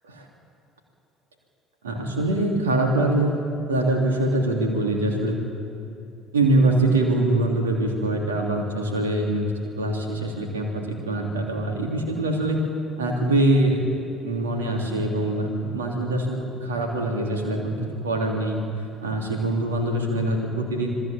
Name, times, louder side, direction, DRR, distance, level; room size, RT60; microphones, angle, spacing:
voice 1, 1.8-3.3 3.7-5.4 6.3-12.6 13.0-13.9 14.2-18.6 19.0-20.9, right 1 dB, 80° right, 1 dB, 3.2 m, -23 dB
27.0 x 20.0 x 7.6 m, 2.7 s
figure-of-eight pair, 60°, 0 cm